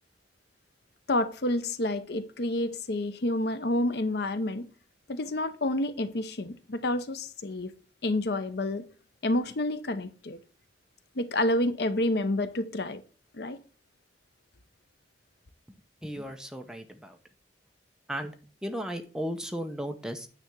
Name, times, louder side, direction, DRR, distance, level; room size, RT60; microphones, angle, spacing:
voice 1, 1.1-4.7 5.1-7.7 8.0-8.9 9.2-10.4 11.2-13.0 13.3-13.6, left 1 dB, 60° left, 0.7 m, -29 dB
voice 2, 16.0-17.2 18.1-18.3 18.6-20.3, equal, 5° right, 0.7 m, -35 dB
9.2 x 3.5 x 6.9 m
head